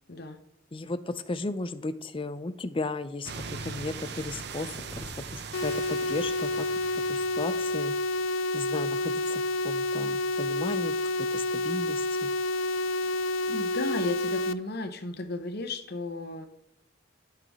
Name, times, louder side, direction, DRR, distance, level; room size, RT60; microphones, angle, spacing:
voice 1, 0.7-4.7 5.0-6.7 7.1-7.9 8.5-12.3, left 2 dB, 30° left, 13 dB, 0.5 m, -35 dB
sound 1, 3.2-8.0, right 4 dB, 60° right, 0.7 m, -41 dB
sound 2, 4.7-7.3, equal, ahead, 2.0 m, -51 dB
sound 3, 5.5-14.5, left 2 dB, 80° left, 0.4 m, -29 dB
voice 2, 13.5-16.5, left 2 dB, 55° left, 8 dB, 1.0 m, -34 dB
12.5 x 5.8 x 3.6 m, 0.78 s
head